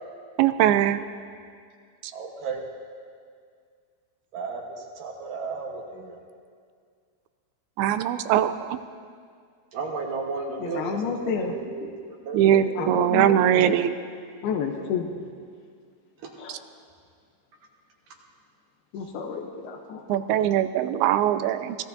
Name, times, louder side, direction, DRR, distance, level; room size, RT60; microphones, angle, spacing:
voice 1, 0.4-1.0 2.0-2.1 7.8-8.8 12.3-13.9 20.1-21.8, right 11 dB, 85° right, 12 dB, 2.4 m, -21 dB
voice 2, 2.1-2.7 4.3-6.2 9.7-13.0 16.2-16.3, right 4 dB, 65° right, 0 dB, 2.7 m, -34 dB
voice 3, 10.6-11.6 11.8-11.9 12.7-13.4 13.7-13.9 14.4-15.1 16.4-16.6 18.9-20.5, left 6 dB, 80° left, 1 dB, 2.8 m, -31 dB
24.5 x 16.5 x 2.7 m, 2.1 s
omnidirectional pair, 4.4 m